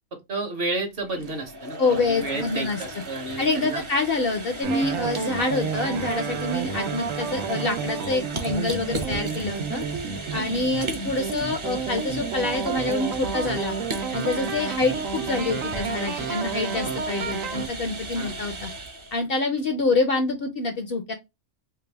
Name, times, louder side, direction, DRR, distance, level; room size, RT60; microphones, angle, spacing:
voice 1, 0.1-3.8 10.3-10.4 18.1-18.4, right 2 dB, 50° right, 1.0 m, -31 dB
sound 1, 1.0-19.2, right 1 dB, 30° right, 0.6 m, -36 dB
voice 2, 1.8-2.8 3.4-9.8 10.3-13.7 14.1-18.7 19.1-21.1, left 3 dB, 60° left, 0.7 m, -26 dB
sound 2, 4.6-17.7, right 6 dB, 85° right, 1.0 m, -31 dB
3.3 x 2.1 x 3.2 m
omnidirectional pair, 1.4 m